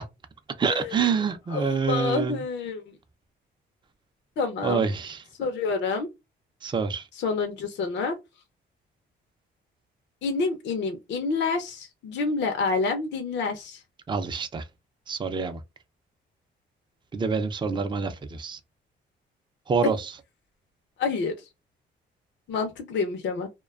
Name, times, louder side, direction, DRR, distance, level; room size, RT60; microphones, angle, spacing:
voice 1, 0.6-2.4 4.6-5.2 6.6-7.1 14.1-14.6 15.1-15.6 17.1-18.6 19.7-20.1, right 5 dB, 25° right, 0.4 m, -27 dB
voice 2, 1.5-2.8 4.4-4.9 5.4-6.1 7.2-8.2 10.2-13.8 21.0-21.3 22.5-23.5, left 4 dB, 65° left, 0.6 m, -28 dB
2.4 x 2.2 x 2.3 m
cardioid pair, 90°, 20 cm